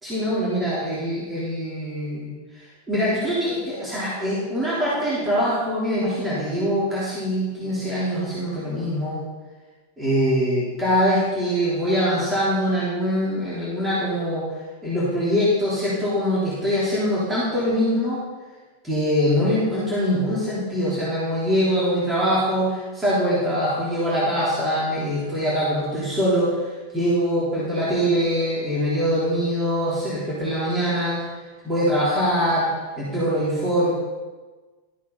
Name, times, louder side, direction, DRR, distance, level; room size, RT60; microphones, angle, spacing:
voice 1, 0.0-2.3 2.9-9.2 10.0-14.5 14.8-18.2 18.8-26.5 26.9-31.3 31.6-32.7 33.0-33.9, equal, 15° right, -9 dB, 3.7 m, -23 dB
13.0 x 8.2 x 4.2 m, 1.3 s
figure-of-eight pair, 90°, 0 cm